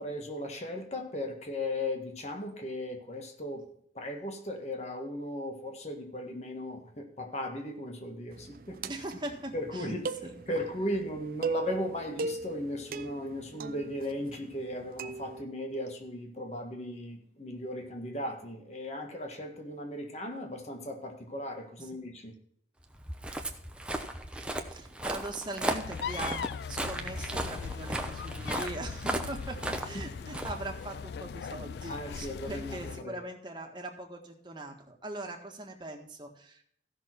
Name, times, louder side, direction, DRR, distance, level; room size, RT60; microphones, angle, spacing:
voice 1, 0.0-3.6 3.9-8.8 9.5-10.0 10.5-22.3 31.9-33.2, left 1 dB, 40° left, 4 dB, 1.6 m, -37 dB
sound 1, 8.3-15.4, right 4 dB, 55° right, 0.5 m, -39 dB
voice 2, 8.9-10.3 21.8-21.9 24.7-36.6, right 2 dB, 25° right, 2 dB, 1.5 m, -41 dB
Walk footsteps, 22.9-31.2, right 1 dB, 5° right, 0.8 m, -36 dB
sound 2, 25.8-33.0, left 6 dB, 65° left, 0.3 m, -40 dB
15.0 x 6.3 x 4.4 m, 0.66 s
head